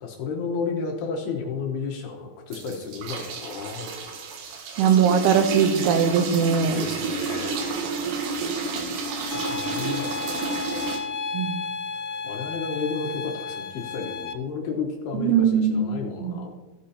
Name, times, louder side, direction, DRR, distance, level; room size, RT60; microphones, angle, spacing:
voice 1, 0.0-3.9 6.7-7.8 8.9-10.9 12.2-16.5, left 5 dB, 75° left, 0 dB, 2.7 m, -32 dB
sound 1, 2.5-11.0, right 4 dB, 75° right, 3.2 m, -30 dB
voice 2, 4.8-6.8 11.3-11.6 15.1-16.4, right 7 dB, 90° right, 7 dB, 3.3 m, -21 dB
sound 2, 9.3-14.3, left 5 dB, 90° left, 3.0 m, -33 dB
15.5 x 6.6 x 2.8 m, 1.2 s
omnidirectional pair, 5.4 m